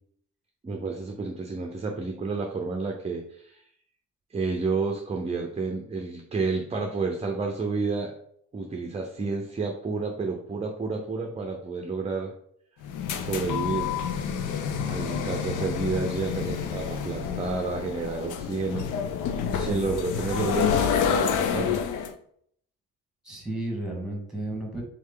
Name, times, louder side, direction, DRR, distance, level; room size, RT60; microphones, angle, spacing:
voice 1, 0.6-3.6 4.3-8.1 8.5-12.3 13.2-13.9 14.8-18.9 19.6-21.8, right 4 dB, 20° right, 2 dB, 0.6 m, -30 dB
sound 1, 12.8-22.1, left 7 dB, 80° left, 0.5 m, -28 dB
voice 2, 19.5-19.9 23.2-24.8, right 1 dB, ahead, 0 dB, 1.6 m, -33 dB
3.7 x 3.2 x 3.6 m, 0.66 s
cardioid pair, 90°, 30 cm